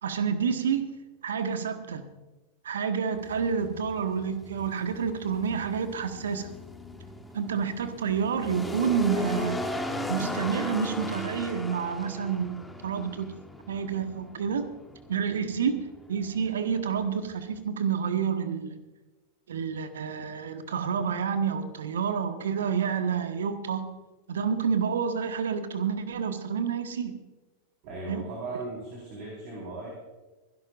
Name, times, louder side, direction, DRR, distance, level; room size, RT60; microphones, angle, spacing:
voice 1, 0.0-0.8 1.2-2.0 2.6-6.5 7.3-9.7 10.1-13.3 13.7-14.7 15.1-18.8 19.5-23.8 24.3-27.1 28.1-28.2, right 6 dB, 65° right, 9 dB, 1.3 m, -29 dB
sound 1, 3.2-17.6, left 2 dB, 5° left, 1.4 m, -38 dB
voice 2, 27.8-29.9, right 2 dB, 45° right, -3 dB, 4.4 m, -37 dB
25.5 x 11.5 x 2.5 m, 1.1 s
figure-of-eight pair, 90°, 0 cm